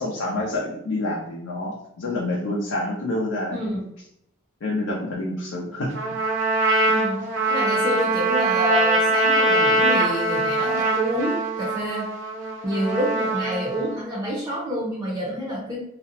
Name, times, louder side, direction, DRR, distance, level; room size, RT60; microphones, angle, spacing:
voice 1, 0.0-3.6 3.8-3.9 4.6-6.0, left 2 dB, 80° left, -4 dB, 0.5 m, -27 dB
voice 2, 3.5-3.8 6.9-7.2 7.5-12.1 12.6-15.8, equal, 15° right, -6 dB, 0.5 m, -28 dB
Trumpet, 5.9-14.0, right 2 dB, 65° right, 0.5 m, -22 dB
2.4 x 2.0 x 2.8 m, 0.77 s
head